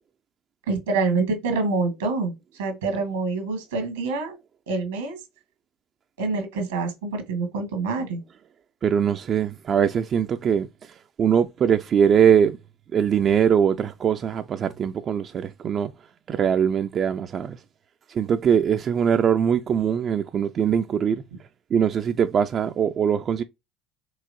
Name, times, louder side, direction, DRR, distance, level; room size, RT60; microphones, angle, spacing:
voice 1, 0.7-4.4 4.7-5.2 6.2-8.2, right 3 dB, 90° right, 1.3 m, -26 dB
voice 2, 8.8-12.6 12.9-15.9 16.3-17.6 18.1-21.2 21.7-23.4, right 8 dB, 45° right, 0.3 m, -22 dB
4.7 x 2.9 x 2.5 m
hypercardioid pair, 65°, 0 cm